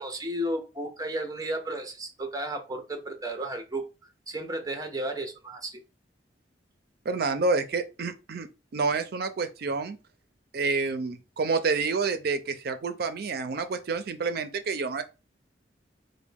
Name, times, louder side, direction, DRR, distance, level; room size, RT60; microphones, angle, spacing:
voice 1, 0.0-3.9 4.3-5.8, right 1 dB, 20° right, 0.7 m, -33 dB
voice 2, 7.1-8.5 8.7-10.0 10.5-15.0, right 4 dB, 60° right, 0.5 m, -28 dB
3.8 x 2.1 x 3.5 m
head